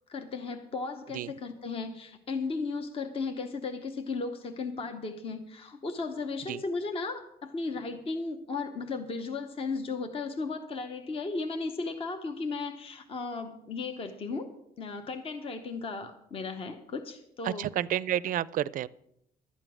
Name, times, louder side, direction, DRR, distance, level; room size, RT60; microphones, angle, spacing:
voice 1, 0.1-14.5 14.8-17.7, left 4 dB, 35° left, 7 dB, 0.9 m, -35 dB
voice 2, 17.4-18.9, right 11 dB, 55° right, 20 dB, 0.4 m, -30 dB
12.5 x 8.9 x 6.0 m, 0.76 s
cardioid pair, 160°, 17 cm